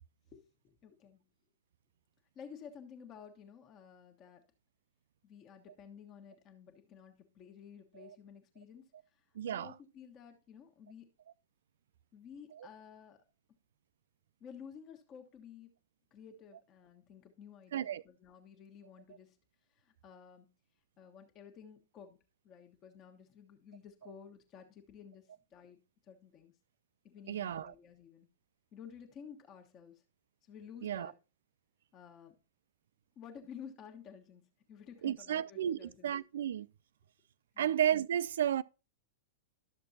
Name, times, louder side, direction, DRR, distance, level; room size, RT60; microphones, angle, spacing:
voice 1, 0.3-1.2 2.3-4.4 5.2-8.8 9.1-11.1 12.1-13.2 14.4-15.7 16.1-19.4 19.7-20.5 21.0-22.2 22.4-25.8 26.1-26.5 27.0-28.3 28.7-30.0 30.5-31.1 31.9-32.3 33.2-34.4 34.7-36.1 37.5-37.8, left 7 dB, 35° left, 1.3 m, -53 dB
voice 2, 9.4-9.7 17.7-18.0 27.3-27.7 30.8-31.1 35.0-36.7 37.6-38.6, right 10 dB, 65° right, 0.3 m, -33 dB
12.5 x 6.7 x 2.7 m
figure-of-eight pair, 100°, 0 cm